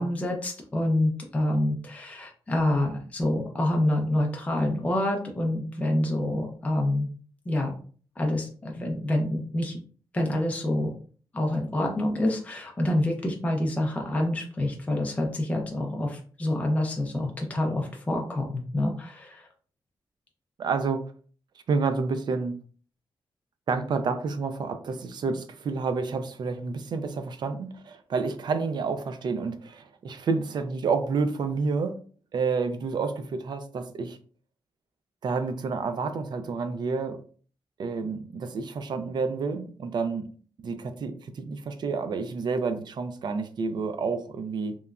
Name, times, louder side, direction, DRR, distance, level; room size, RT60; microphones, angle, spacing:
voice 1, 0.0-7.1 7.5-7.8 8.2-9.8 10.1-10.9 11.3-19.5, left 1 dB, 15° left, 1 dB, 0.4 m, -27 dB
voice 2, 20.6-21.0 21.7-22.6 23.7-32.0 32.3-34.2 35.2-37.2 37.8-40.3 40.6-44.8, right 4 dB, 55° right, 9 dB, 0.3 m, -29 dB
2.9 x 2.2 x 2.3 m, 0.43 s
wide cardioid pair, 165°, 9 cm